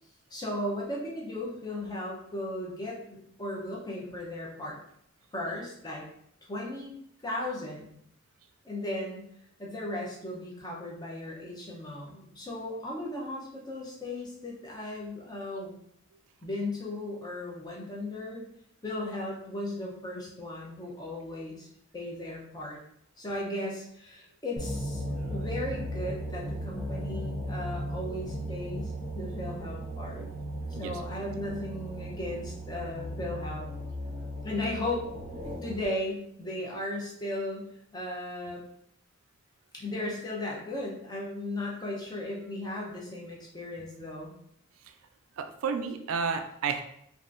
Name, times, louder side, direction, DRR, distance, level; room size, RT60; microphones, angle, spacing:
voice 1, 0.3-4.8 5.3-6.0 6.5-6.9 7.2-7.9 8.6-9.3 9.6-15.8 16.4-18.4 18.8-21.7 21.9-22.8 23.2-30.3 30.8-33.7 34.4-35.1 35.6-38.6 39.7-44.3, left 1 dB, 20° left, -3 dB, 0.6 m, -36 dB
sound 1, 24.6-35.8, equal, 30° right, 0.7 m, -36 dB
voice 2, 45.4-46.8, right 5 dB, 75° right, 6 dB, 0.3 m, -31 dB
3.4 x 2.5 x 2.5 m, 0.72 s
head